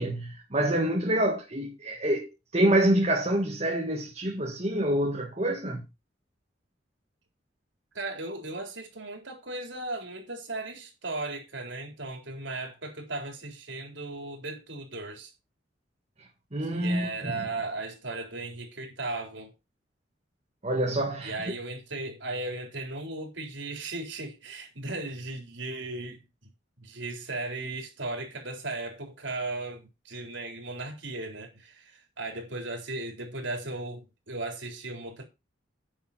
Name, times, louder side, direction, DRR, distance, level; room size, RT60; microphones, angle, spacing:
voice 1, 0.0-2.3 2.5-5.8 16.5-17.5 20.6-21.3, right 1 dB, 35° right, 1.7 m, -26 dB
voice 2, 7.9-15.3 16.7-19.5 21.2-26.2 26.8-35.2, right 2 dB, 80° right, 4.0 m, -36 dB
10.0 x 7.3 x 4.4 m
head